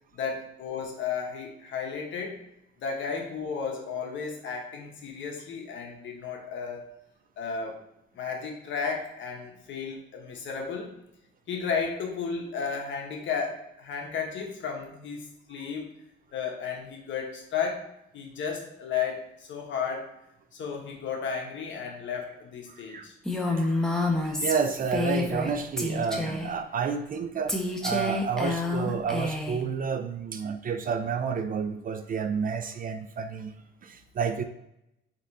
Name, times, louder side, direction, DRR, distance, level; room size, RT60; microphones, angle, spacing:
voice 1, 0.1-2.4 2.8-6.9 7.4-7.8 8.1-10.9 11.5-15.9 16.3-17.9 18.1-20.1 20.5-23.1, left 6 dB, 70° left, 1 dB, 1.2 m, -33 dB
voice 2, 22.7-23.1 23.5-23.9 24.2-27.5 27.8-33.6 33.8-34.4, right 6 dB, 45° right, 8 dB, 0.4 m, -30 dB
Female speech woman speaking, 23.3-25.5 25.8-26.5 27.5-29.6, left 2 dB, 5° left, 0.8 m, -28 dB
4.1 x 3.0 x 4.1 m, 0.83 s
cardioid pair, 90°, 20 cm